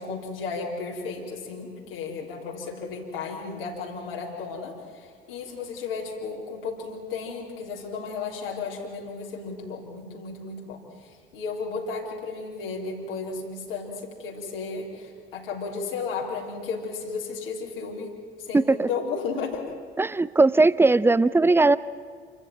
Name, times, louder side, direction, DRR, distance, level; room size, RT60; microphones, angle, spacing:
voice 1, 0.0-19.7, left 4 dB, 75° left, -2 dB, 3.7 m, -34 dB
voice 2, 18.5-18.9 20.0-21.8, right 3 dB, 10° right, 18 dB, 0.7 m, -19 dB
28.0 x 14.5 x 9.1 m, 2.1 s
figure-of-eight pair, 50°, 29 cm